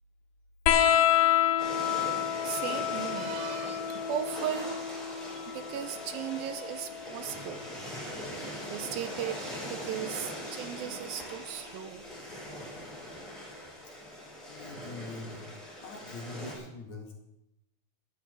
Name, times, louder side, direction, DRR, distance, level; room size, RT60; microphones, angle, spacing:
sound 1, 0.7-7.7 9.1-9.9 11.2-11.3, left 10 dB, 75° left, 2.4 m, -29 dB
sound 2, 1.6-16.6, equal, 15° left, 5.4 m, -41 dB
voice 1, 2.4-4.8 5.3-12.1, right 10 dB, 80° right, 10 dB, 2.3 m, -37 dB
voice 2, 14.5-15.5 15.8-17.1, left 2 dB, 50° left, 0 dB, 3.1 m, -43 dB
22.0 x 10.5 x 3.5 m, 0.85 s
omnidirectional pair, 4.4 m